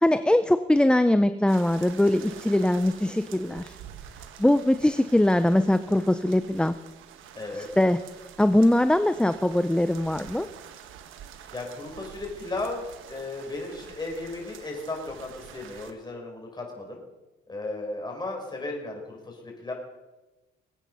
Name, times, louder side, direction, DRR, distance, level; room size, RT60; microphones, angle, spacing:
voice 1, 0.0-3.7 4.4-6.7 7.6-8.0 8.4-10.5, left 1 dB, 5° left, 11 dB, 0.6 m, -22 dB
sound 1, 1.5-15.9, right 9 dB, 90° right, 1.3 m, -47 dB
voice 2, 7.4-7.7 11.5-17.0 17.5-19.7, left 2 dB, 20° left, 0 dB, 5.2 m, -35 dB
22.0 x 9.1 x 5.6 m, 1.1 s
cardioid pair, 90°, 20 cm